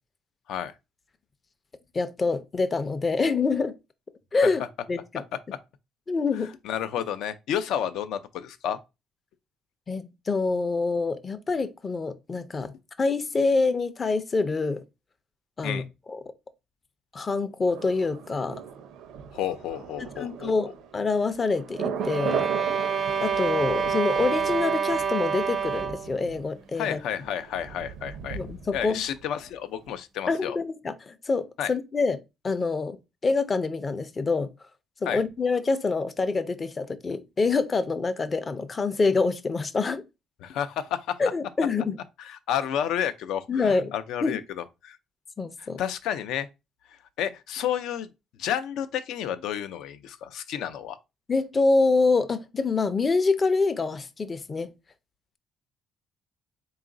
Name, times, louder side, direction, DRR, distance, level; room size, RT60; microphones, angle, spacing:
voice 1, 1.9-3.7 4.3-4.6 4.9-5.2 6.1-6.5 9.9-14.8 15.6-15.8 16.1-16.2 17.1-18.6 20.2-22.5 23.2-27.0 28.3-29.0 30.3-32.2 32.4-33.0 33.2-34.5 35.0-40.0 41.2-42.0 43.5-43.9 44.2-44.4 45.4-45.8 51.3-54.7, left 4 dB, 25° left, 0.4 m, -26 dB
voice 2, 6.4-8.8 15.6-15.8 19.3-20.5 26.8-28.4 28.7-30.6 31.6-31.7 35.1-35.2 40.4-41.2 42.2-45.0 45.6-46.5 46.9-48.1 48.4-51.0, left 9 dB, 80° left, 0.5 m, -31 dB
Thunder, 17.7-29.5 29.8-29.9, right 7 dB, 85° right, 0.5 m, -38 dB
sound 1, 22.0-26.2, right 6 dB, 35° right, 0.4 m, -27 dB
3.9 x 2.4 x 3.7 m
cardioid pair, 140°, 0 cm